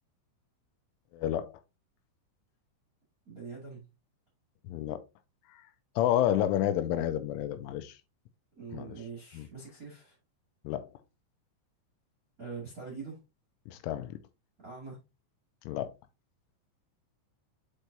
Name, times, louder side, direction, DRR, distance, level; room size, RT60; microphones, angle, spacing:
voice 1, 1.1-1.6 4.6-5.0 5.5-5.6 6.0-8.0 8.7-8.9 9.3-9.5 10.6-10.9 13.7-14.2 15.7-15.9, left 12 dB, 85° left, 3.1 m, -30 dB
voice 2, 3.2-3.8 6.3-6.5 8.6-10.1 12.4-13.2 14.6-15.0, right 5 dB, 35° right, 1.3 m, -43 dB
8.1 x 4.6 x 2.8 m
omnidirectional pair, 5.6 m